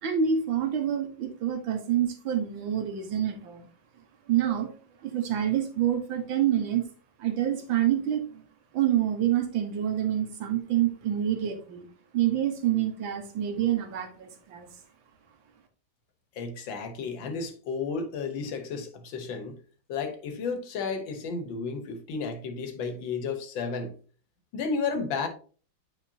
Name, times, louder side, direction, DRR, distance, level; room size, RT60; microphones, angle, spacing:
voice 1, 0.0-3.7 4.3-4.7 5.0-6.8 7.2-8.2 8.7-11.9 12.1-14.7, right 10 dB, 85° right, 1.9 m, -27 dB
voice 2, 16.4-19.6 19.9-23.9 24.5-25.3, left 4 dB, 80° left, 1.8 m, -32 dB
9.2 x 4.3 x 2.7 m
omnidirectional pair, 2.1 m